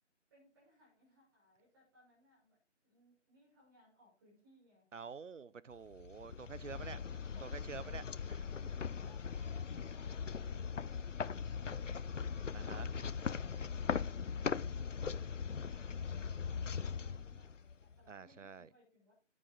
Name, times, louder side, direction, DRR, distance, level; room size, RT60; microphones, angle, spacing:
voice 1, 0.3-4.9 6.6-7.6 9.0-14.3 14.7-19.1, left 1 dB, 20° right, 6.3 m, -67 dB
voice 2, 4.9-7.0 7.4-8.4 12.5-12.9 18.1-18.7, right 5 dB, 85° right, 0.7 m, -48 dB
sound 1, 5.9-18.0, left 6 dB, 90° left, 0.6 m, -40 dB
9.9 x 9.7 x 3.8 m
figure-of-eight pair, 165°, 36 cm